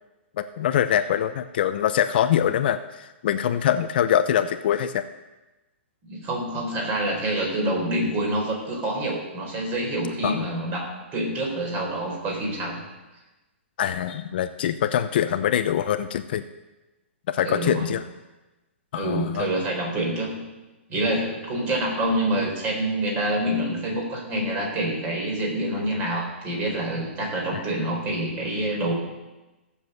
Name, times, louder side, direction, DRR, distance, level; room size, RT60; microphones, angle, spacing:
voice 1, 0.4-5.0 10.2-10.5 13.8-16.4 17.3-18.0 18.9-19.5 27.5-27.6, left 10 dB, 50° left, 10 dB, 0.7 m, -24 dB
voice 2, 6.1-12.8 17.4-17.9 18.9-20.4 20.9-28.9, right 1 dB, 25° right, 0 dB, 4.3 m, -27 dB
16.0 x 7.2 x 8.0 m, 1.1 s
hypercardioid pair, 155°, 7 cm